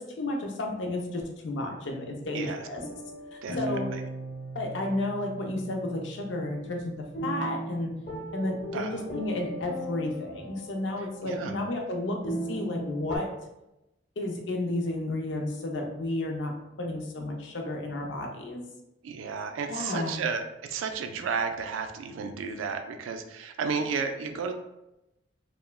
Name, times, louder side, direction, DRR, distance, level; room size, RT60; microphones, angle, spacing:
voice 1, 0.0-2.8 3.3-3.9 4.5-7.9 8.3-13.3 14.2-18.6 19.7-20.2, left 1 dB, 70° left, 2 dB, 0.5 m, -32 dB
sound 1, 2.2-13.2, right 1 dB, 35° left, 0.7 m, -38 dB
voice 2, 3.4-4.0 8.7-8.9 11.2-11.5 19.0-24.5, right 5 dB, 90° right, 7 dB, 0.3 m, -32 dB
3.1 x 2.1 x 2.2 m, 0.91 s
head